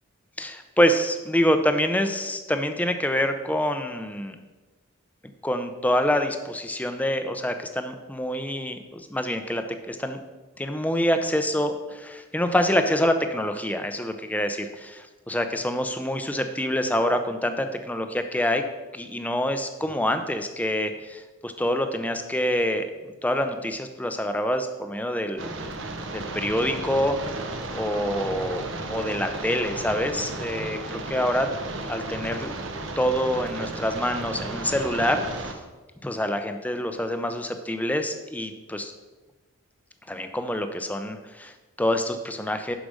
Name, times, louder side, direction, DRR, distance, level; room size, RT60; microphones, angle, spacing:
voice 1, 0.4-4.4 5.4-10.2 10.6-18.6 18.9-25.5 26.1-27.5 27.7-31.5 31.8-32.5 33.0-35.2 36.0-38.9 40.1-42.8, equal, 5° left, 7 dB, 0.6 m, -26 dB
sound 1, 25.4-35.5, right 2 dB, 65° right, 1.1 m, -34 dB
11.5 x 5.1 x 6.4 m, 1.2 s
head